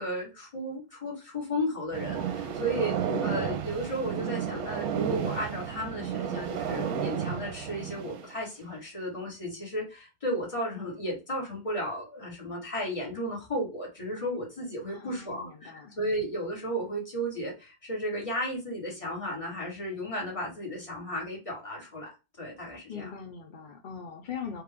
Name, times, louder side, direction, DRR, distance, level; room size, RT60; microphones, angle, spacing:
voice 1, 0.0-2.9 3.2-15.7 16.0-22.1 22.4-23.1, equal, 25° left, -2 dB, 1.4 m, -34 dB
sound 1, 1.9-8.3, right 8 dB, 80° right, 1.1 m, -32 dB
voice 2, 3.1-3.7 14.9-16.0 22.9-24.6, left 7 dB, 60° left, 3 dB, 0.5 m, -41 dB
3.4 x 2.4 x 3.4 m, 0.28 s
omnidirectional pair, 1.5 m